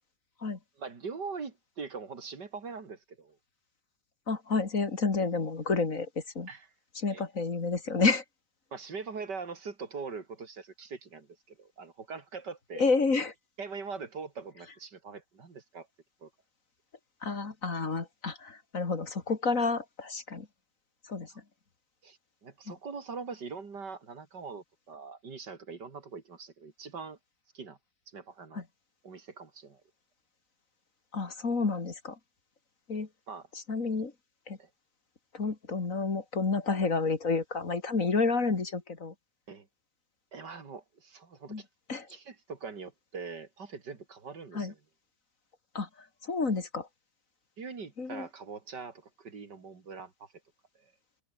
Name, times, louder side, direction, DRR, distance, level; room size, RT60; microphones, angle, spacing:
voice 1, 0.8-3.4 6.5-6.7 7.1-7.2 8.7-12.8 13.6-15.9 16.2-16.3 21.3-21.4 22.0-27.2 27.5-27.8 28.1-28.6 29.0-29.8 33.3-33.5 34.6-34.7 39.5-39.7 40.3-41.6 42.1-44.8 47.6-50.3 50.7-50.9, right 5 dB, 85° right, 3.4 m, -42 dB
voice 2, 4.3-6.1 6.3-6.5 7.0-8.2 12.8-13.3 17.2-20.5 21.0-21.3 22.7-22.8 28.5-28.6 31.1-32.2 32.9-33.1 33.7-34.1 34.5-34.6 35.3-39.1 41.5-41.6 41.9-42.1 44.5-44.7 45.7-45.9 46.2-46.9 48.0-48.3, left 4 dB, 50° left, 2.9 m, -30 dB
omnidirectional pair, 1.8 m